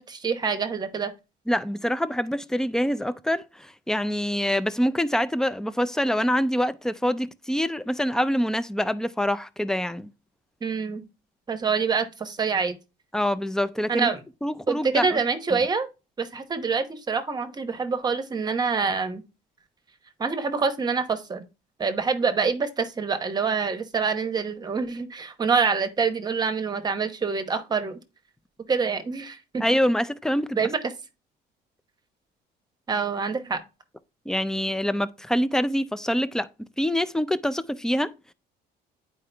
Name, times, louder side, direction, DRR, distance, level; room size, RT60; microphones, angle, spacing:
voice 1, 0.1-1.1 10.6-11.0 11.5-12.7 13.9-14.2 14.7-15.9 16.2-19.2 20.2-21.4 21.8-28.0 28.7-29.6 30.6-30.8 32.9-33.6, right 5 dB, 25° right, 0.9 m, -26 dB
voice 2, 1.5-10.1 13.1-14.1 14.4-15.2 15.5-15.6 29.6-30.6 34.3-36.5 36.8-38.3, equal, 5° left, 0.4 m, -25 dB
9.5 x 4.7 x 3.3 m
cardioid pair, 155°, 18 cm